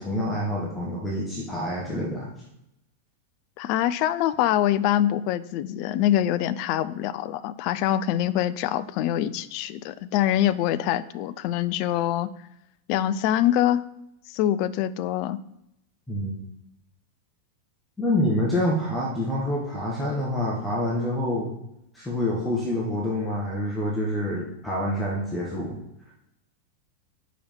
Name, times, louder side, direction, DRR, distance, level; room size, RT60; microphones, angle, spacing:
voice 1, 0.0-2.3 16.1-16.4 18.0-21.5 21.9-25.8 26.1-26.2, left 1 dB, 5° left, -5 dB, 1.3 m, -27 dB
voice 2, 3.6-12.3 12.9-13.8 14.3-15.4, left 12 dB, 45° left, 14 dB, 0.3 m, -24 dB
5.5 x 5.0 x 4.3 m, 0.83 s
figure-of-eight pair, 90°, 0 cm